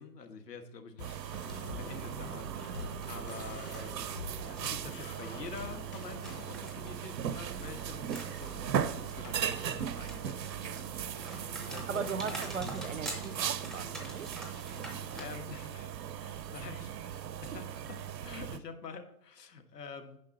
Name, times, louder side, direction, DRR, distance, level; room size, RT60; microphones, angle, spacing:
voice 1, 0.0-1.4 1.7-4.1 4.4-12.1 14.8-20.2, left 5 dB, 80° left, 1.6 m, -47 dB
sound 1, 1.0-6.6, left 4 dB, 35° left, 0.8 m, -48 dB
sound 2, 1.0-18.6, right 9 dB, 90° right, 0.8 m, -38 dB
sound 3, 1.4-15.4, right 1 dB, ahead, 0.4 m, -46 dB
voice 2, 11.9-14.3 17.5-17.6, right 6 dB, 55° right, 0.5 m, -38 dB
9.5 x 5.8 x 4.1 m
hypercardioid pair, 180°, 48 cm